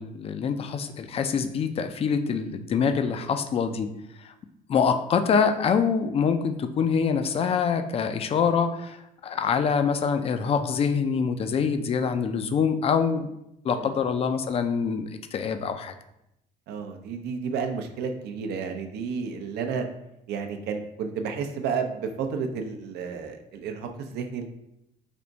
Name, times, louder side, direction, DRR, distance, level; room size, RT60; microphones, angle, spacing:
voice 1, 0.0-3.9 4.2-4.3 4.7-13.3 13.6-15.9, left 6 dB, 35° left, 9 dB, 0.4 m, -25 dB
voice 2, 16.7-19.9 20.3-24.4, right 5 dB, 75° right, 6 dB, 0.5 m, -31 dB
3.5 x 2.5 x 3.9 m, 0.84 s
cardioid pair, 110°, 17 cm